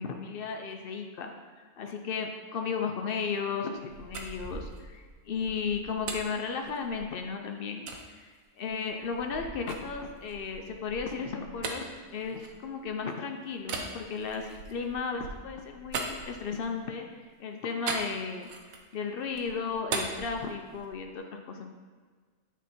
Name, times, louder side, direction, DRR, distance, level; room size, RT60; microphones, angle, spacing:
voice 1, 0.0-1.3 1.8-8.3 8.6-18.5 18.9-21.7, left 5 dB, 65° left, 4 dB, 0.5 m, -35 dB
sound 1, 3.9-7.2 7.9-8.0 8.6-13.0 13.6-16.8 17.9-19.0 19.3-21.1, right 4 dB, 75° right, 1.1 m, -40 dB
9.0 x 3.1 x 4.2 m, 1.5 s
omnidirectional pair, 1.5 m